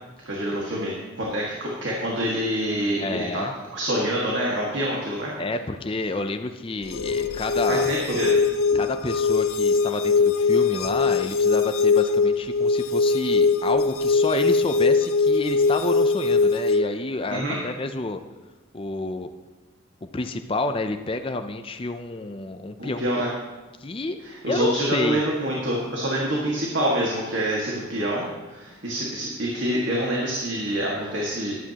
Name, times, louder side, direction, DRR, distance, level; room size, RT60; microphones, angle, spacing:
voice 1, 0.3-3.5 3.7-5.3 7.7-8.4 17.3-17.6 22.8-23.3 24.2-31.6, right 1 dB, 60° right, -4 dB, 1.8 m, -26 dB
voice 2, 3.0-3.5 5.4-7.9 8.7-18.2 18.7-19.3 20.0-23.0 23.8-24.2 24.5-25.2, left 2 dB, 25° left, 7 dB, 0.5 m, -29 dB
sound 1, 6.8-16.8, left 4 dB, 90° left, 0.6 m, -21 dB
14.5 x 11.5 x 2.9 m, 1.2 s
head